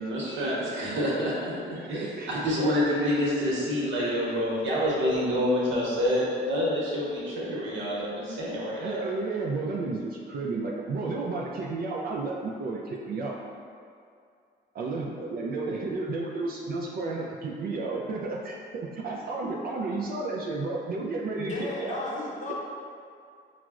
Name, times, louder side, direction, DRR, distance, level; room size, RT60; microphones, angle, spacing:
voice 1, 0.0-9.0, equal, 70° right, -6 dB, 1.0 m, -27 dB
voice 2, 1.8-2.3 2.6-2.7 8.8-13.4 14.7-22.0, right 3 dB, 50° right, -3 dB, 0.4 m, -32 dB
voice 3, 21.4-22.5, left 2 dB, 40° left, -4 dB, 0.6 m, -34 dB
4.7 x 2.0 x 2.3 m, 2.3 s
cardioid pair, 90°, 20 cm